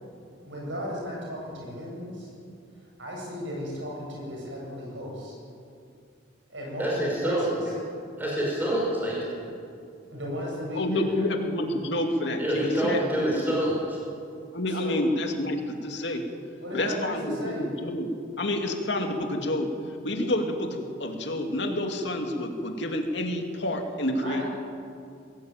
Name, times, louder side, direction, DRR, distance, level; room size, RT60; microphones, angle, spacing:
voice 1, 0.4-2.3 3.0-5.3 6.5-7.6 10.1-11.2 14.8-15.0 16.6-17.6 24.2-24.4, equal, 70° right, -2 dB, 7.8 m, -35 dB
voice 2, 6.8-7.8 8.2-9.3 12.4-14.0, equal, 10° right, -4 dB, 5.8 m, -27 dB
voice 3, 10.7-13.6 14.5-16.2 16.7-18.1 18.4-19.7 20.0-24.4, left 1 dB, 60° left, 3 dB, 2.6 m, -29 dB
21.5 x 17.5 x 9.0 m, 2.4 s
head